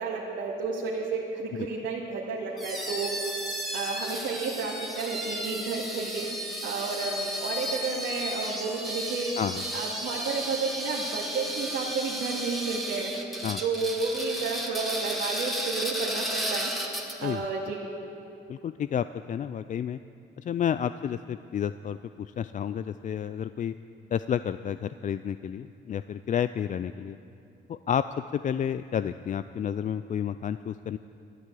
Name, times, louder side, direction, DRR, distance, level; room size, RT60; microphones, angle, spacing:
voice 1, 0.0-3.3 3.7-6.3 6.6-9.4 9.7-16.7 17.2-17.8, right 4 dB, 75° right, -6 dB, 2.4 m, -31 dB
sound 1, 2.6-17.4, equal, ahead, 2.1 m, -34 dB
voice 2, 18.5-20.0 20.4-23.7 24.1-27.2 27.7-28.0 28.3-31.0, left 9 dB, 40° left, 13 dB, 0.4 m, -30 dB
13.0 x 11.5 x 8.4 m, 2.7 s
cardioid pair, 90°, 20 cm